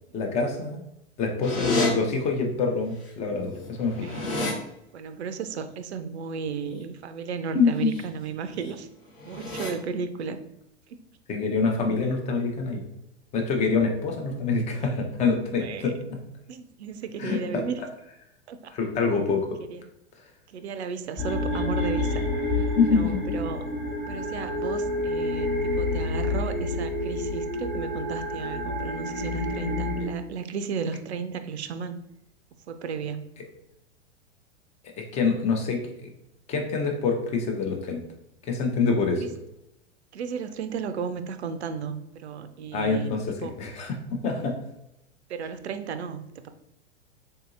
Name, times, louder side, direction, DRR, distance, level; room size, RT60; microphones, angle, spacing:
voice 1, 0.1-0.8 1.2-4.1 7.5-7.9 11.3-12.8 13.3-16.2 17.2-17.6 18.7-19.5 22.7-23.2 35.1-36.1 36.5-38.0 38.4-39.2 42.7-43.2 43.6-44.6, left 4 dB, 20° left, 3 dB, 0.5 m, -25 dB
sound 1, 1.4-1.9 3.1-3.2 3.5-4.5 7.7-8.0 8.4-8.7 9.2-9.7, left 2 dB, 55° left, 1.0 m, -30 dB
voice 2, 4.0-4.4 4.9-8.9 9.3-10.4 10.9-11.0 15.6-15.9 16.5-17.8 18.5-18.7 19.7-19.9 20.5-22.3 22.9-23.6 24.1-32.0 32.7-33.2 39.2-39.3 40.1-43.1 43.4-43.5 45.3-46.5, right 6 dB, 65° right, 10 dB, 0.5 m, -34 dB
sound 2, 21.2-30.1, left 2 dB, ahead, 1.0 m, -28 dB
3.8 x 2.7 x 2.4 m, 0.83 s
figure-of-eight pair, 95°, 35 cm